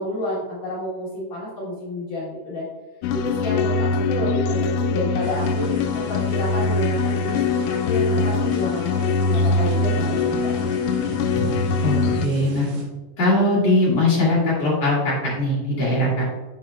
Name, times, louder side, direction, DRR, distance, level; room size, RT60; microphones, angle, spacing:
voice 1, 0.0-2.7 3.1-5.7 5.9-10.6 11.0-11.1, left 1 dB, 55° left, -8 dB, 2.4 m, -30 dB
sound 1, 3.0-12.3, left 4 dB, 85° left, 2.9 m, -22 dB
sound 2, 5.2-12.9, right 1 dB, 70° right, 3.7 m, -36 dB
voice 2, 11.8-12.7 13.2-16.2, left 1 dB, 40° left, -6 dB, 2.7 m, -20 dB
8.2 x 7.5 x 2.4 m, 1.3 s
omnidirectional pair, 5.6 m